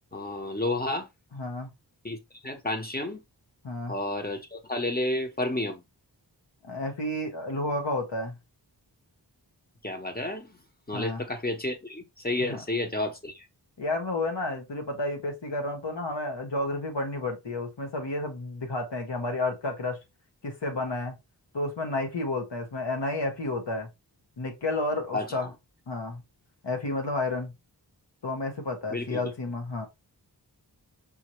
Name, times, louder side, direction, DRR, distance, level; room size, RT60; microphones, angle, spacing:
voice 1, 0.1-1.1 2.0-3.2 3.9-5.8 9.8-10.6 10.9-13.5 25.1-25.5 28.9-29.3, left 2 dB, 20° left, 1.1 m, -31 dB
voice 2, 1.3-1.7 3.6-3.9 6.6-8.4 10.9-11.2 12.4-12.6 13.8-20.0 20.4-21.1 21.5-23.9 24.4-25.5 25.9-26.2 26.6-27.5 28.2-29.9, left 2 dB, 90° left, 1.4 m, -31 dB
5.6 x 2.8 x 3.1 m
wide cardioid pair, 70°, 41 cm